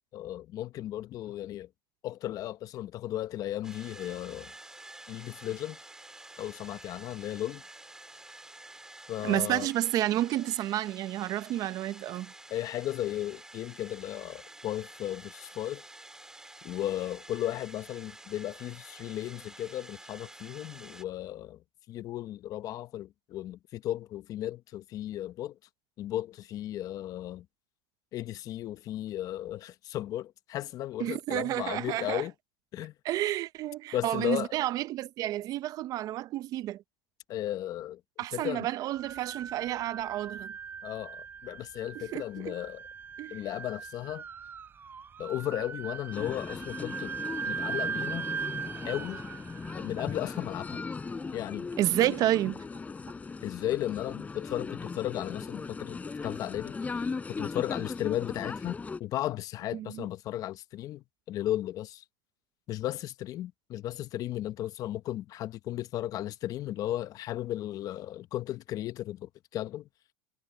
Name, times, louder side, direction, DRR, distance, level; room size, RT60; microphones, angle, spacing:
voice 1, 0.1-1.7 2.0-4.5 5.1-5.8 6.4-7.6 9.1-9.7 12.5-15.8 16.6-21.6 21.9-25.5 26.0-27.5 28.1-32.3 32.7-32.9 33.9-34.5 37.3-38.0 38.3-38.7 40.8-42.8 43.3-44.2 45.2-47.1 47.4-48.2 48.8-49.2 49.7-50.8 51.3-51.7 52.0-52.1 53.4-62.0 62.7-69.9, left 13 dB, 45° left, 0.9 m, -35 dB
sound 1, 3.6-21.0, right 2 dB, 5° right, 4.2 m, -50 dB
voice 2, 9.2-12.3 31.0-32.2 33.0-36.8 38.2-40.5 41.9-42.5 43.2-43.4 51.8-52.6 59.7-60.1, right 14 dB, 45° right, 0.7 m, -30 dB
sound 2, 38.9-52.0, right 6 dB, 25° right, 4.6 m, -40 dB
sound 3, 46.1-59.0, left 4 dB, 15° left, 6.8 m, -38 dB
supercardioid pair, 120°, 9 cm